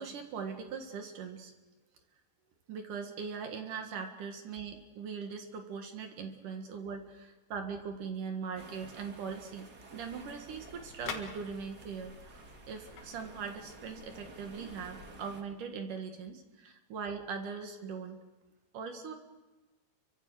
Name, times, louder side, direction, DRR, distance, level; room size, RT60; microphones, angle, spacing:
voice 1, 0.0-1.5 2.7-9.7 9.9-18.2 18.7-19.1, right 6 dB, 60° right, 5 dB, 2.8 m, -40 dB
sound 1, 8.5-15.4, right 2 dB, 40° right, 1.3 m, -53 dB
sound 2, 10.0-15.1, left 6 dB, 70° left, 3.7 m, -48 dB
29.5 x 24.0 x 4.8 m, 1.2 s
omnidirectional pair, 4.9 m